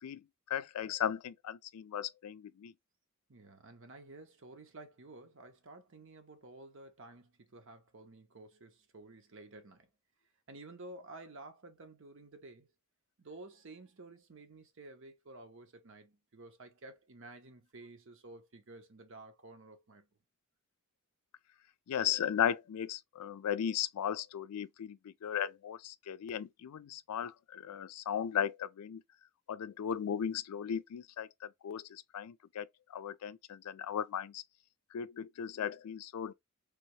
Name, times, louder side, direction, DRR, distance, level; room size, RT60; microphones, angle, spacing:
voice 1, 0.0-2.7 21.9-29.0 29.5-34.4 34.9-36.3, left 9 dB, 90° left, 0.4 m, -36 dB
voice 2, 3.3-9.9 10.5-12.7 13.2-20.1, right 2 dB, 60° right, 0.9 m, -52 dB
3.4 x 2.8 x 3.0 m
head